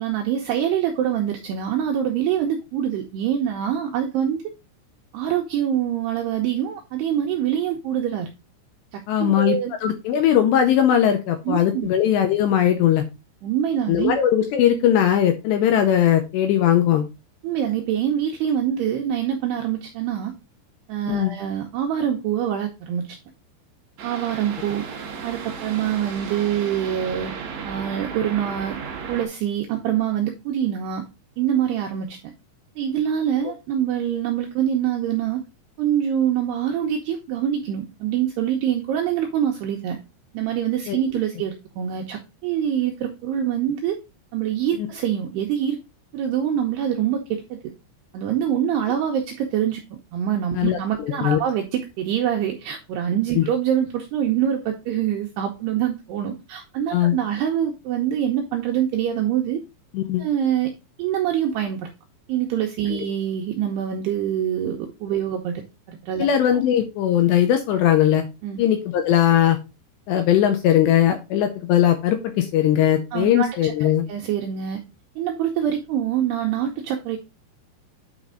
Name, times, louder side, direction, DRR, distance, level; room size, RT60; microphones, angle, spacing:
voice 1, 0.0-4.4 5.1-8.3 8.9-9.7 11.5-11.9 13.4-14.2 17.4-20.3 20.9-23.2 24.0-24.9 25.2-27.3 27.6-28.8 29.1-31.0 31.4-32.2 32.8-35.4 35.8-40.0 40.3-44.0 44.3-45.8 46.1-47.6 48.1-59.6 60.2-60.7 61.0-61.9 62.3-65.6 65.9-66.3 68.4-68.6 73.1-74.8 75.2-77.2, right 10 dB, 90° right, 2 dB, 2.4 m, -25 dB
voice 2, 9.1-13.0 13.9-17.1 21.1-21.4 40.9-41.0 44.8-44.9 50.5-50.8 51.2-51.4 53.4-53.5 56.9-57.2 59.9-60.3 62.9-63.0 66.2-68.3 68.6-69.6 70.1-74.0, left 10 dB, 85° left, 6 dB, 2.6 m, -19 dB
sound 1, 24.0-29.3, right 6 dB, 70° right, 1.7 m, -34 dB
9.2 x 4.2 x 3.7 m, 0.27 s
omnidirectional pair, 5.7 m